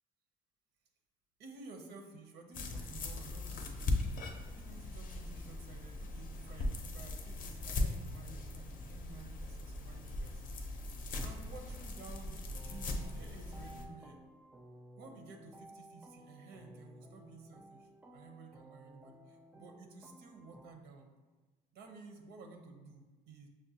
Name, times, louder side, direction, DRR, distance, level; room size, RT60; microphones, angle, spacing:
voice 1, 1.4-3.9 4.6-10.4 10.7-10.9 11.2-14.2 15.0-21.1 21.7-23.5, right 3 dB, 80° right, 4 dB, 0.6 m, -53 dB
sound 1, 2.5-13.8, left 2 dB, 55° left, 0.5 m, -39 dB
sound 2, 12.5-20.7, right 1 dB, 10° right, 0.3 m, -56 dB
6.1 x 2.1 x 2.7 m, 1.2 s
cardioid pair, 110°, 17 cm